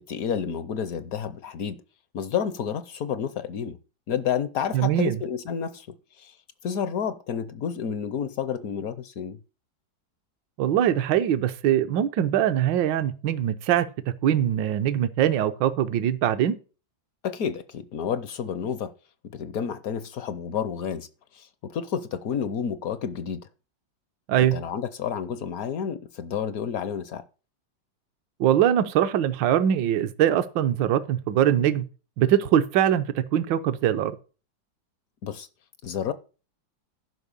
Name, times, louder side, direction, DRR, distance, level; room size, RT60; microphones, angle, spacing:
voice 1, 0.1-1.8 2.1-3.8 4.1-5.9 6.2-6.4 6.6-9.4 17.2-18.9 19.2-21.1 21.3-23.5 24.4-27.2 35.2-35.5 35.8-36.1, left 7 dB, 65° left, 0.9 m, -30 dB
voice 2, 4.7-5.2 10.6-13.9 14.2-16.6 24.3-24.5 28.4-31.8 32.2-34.2, right 10 dB, 75° right, 1.4 m, -22 dB
11.0 x 5.4 x 6.7 m
omnidirectional pair, 2.0 m